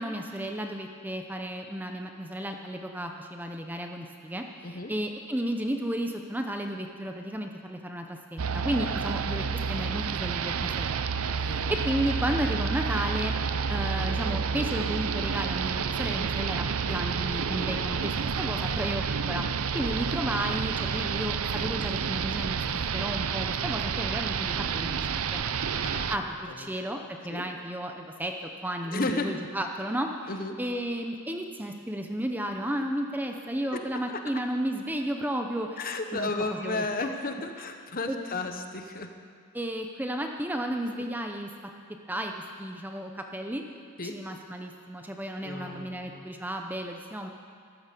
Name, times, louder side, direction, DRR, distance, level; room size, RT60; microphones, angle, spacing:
voice 1, 0.0-11.0 11.4-13.3 13.7-19.4 19.7-28.3 28.6-30.1 30.6-36.3 36.6-36.8 38.1-38.2 39.5-41.5 42.1-43.6 44.0-47.3, right 1 dB, 10° right, 3 dB, 0.7 m, -33 dB
sound 1, 8.4-26.2, right 6 dB, 75° right, 0.6 m, -29 dB
voice 2, 25.6-26.7 27.3-27.5 28.9-29.3 30.3-30.6 33.7-33.8 34.1-34.2 35.8-39.1 41.0-41.1 44.0-44.2 45.4-46.3, left 3 dB, 40° left, 6 dB, 1.0 m, -34 dB
14.0 x 12.5 x 6.8 m, 2.2 s
head